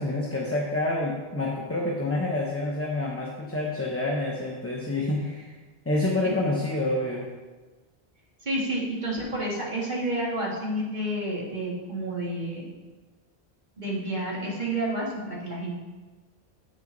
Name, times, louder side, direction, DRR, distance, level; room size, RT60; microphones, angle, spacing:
voice 1, 0.0-5.5 5.8-7.3, left 2 dB, 15° left, -2 dB, 0.8 m, -28 dB
voice 2, 8.4-12.7 13.8-15.8, right 1 dB, 45° right, -5 dB, 2.0 m, -30 dB
8.0 x 6.3 x 3.9 m, 1.3 s
omnidirectional pair, 1.1 m